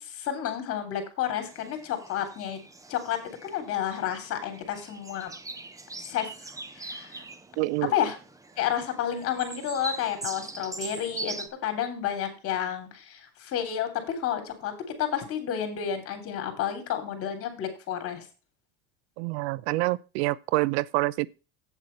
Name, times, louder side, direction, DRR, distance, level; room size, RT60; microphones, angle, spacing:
voice 1, 0.0-2.6 2.9-5.3 6.0-7.3 7.9-8.2 8.6-11.4 11.6-18.3, left 9 dB, 45° left, 3.2 m, -31 dB
sound 1, 1.4-11.5, right 2 dB, 10° right, 0.9 m, -42 dB
voice 2, 7.6-7.9 19.2-21.3, right 20 dB, 80° right, 0.6 m, -27 dB
8.3 x 7.3 x 5.3 m
supercardioid pair, 130°, 33 cm